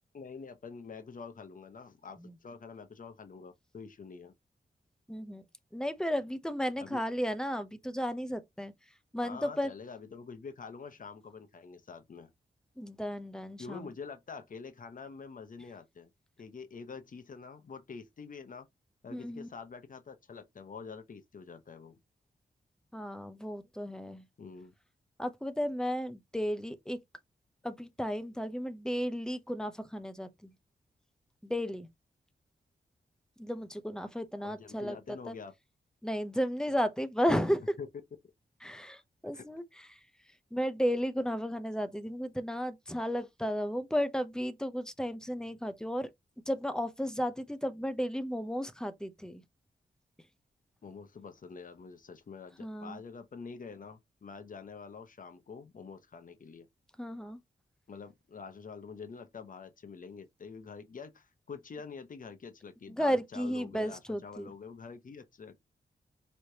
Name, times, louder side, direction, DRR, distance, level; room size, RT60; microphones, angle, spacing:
voice 1, 0.1-4.3 6.8-7.0 9.2-12.3 13.6-16.1 16.4-18.7 19.0-22.0 24.4-24.7 34.4-35.5 37.8-37.9 39.3-39.4 50.8-56.7 57.9-65.6, left 5 dB, 50° left, 0.8 m, -46 dB
voice 2, 5.1-5.4 5.7-8.7 9.1-9.7 12.8-13.9 19.1-19.5 22.9-24.2 25.2-27.0 27.6-30.5 31.4-31.9 33.4-35.4 36.0-37.8 38.6-40.0 40.5-46.1 46.5-49.4 52.6-53.0 57.0-57.4 62.9-64.5, equal, 5° left, 0.6 m, -34 dB
4.7 x 3.2 x 2.8 m
wide cardioid pair, 140°, 18 cm